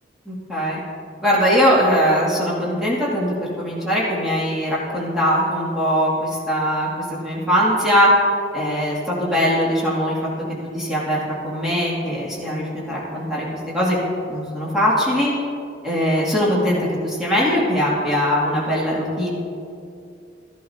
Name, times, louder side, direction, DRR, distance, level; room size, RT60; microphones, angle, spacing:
voice 1, 0.3-0.8 1.2-6.9 7.2-8.1 8.5-10.2 10.7-14.0 14.3-15.3 15.8-19.3, equal, 5° right, -8 dB, 2.5 m, -21 dB
14.5 x 11.0 x 2.9 m, 2.5 s
head